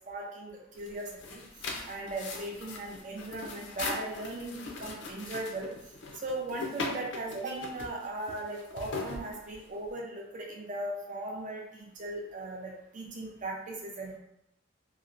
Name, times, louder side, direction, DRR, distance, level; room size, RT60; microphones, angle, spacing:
voice 1, 0.1-1.4 1.9-5.7 6.2-14.2, right 2 dB, 40° right, -1 dB, 0.5 m, -38 dB
sound 1, 0.7-9.9, left 3 dB, 65° left, 0.4 m, -40 dB
2.8 x 2.0 x 2.5 m, 0.80 s
head